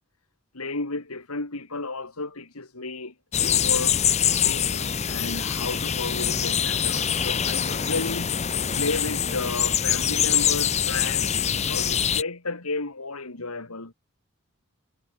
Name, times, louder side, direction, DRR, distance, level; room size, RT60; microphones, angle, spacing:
voice 1, 0.5-4.0 4.4-8.4 8.8-13.9, left 3 dB, 90° left, 3.1 m, -33 dB
sound 1, 3.3-12.2, left 8 dB, 30° left, 0.7 m, -24 dB
head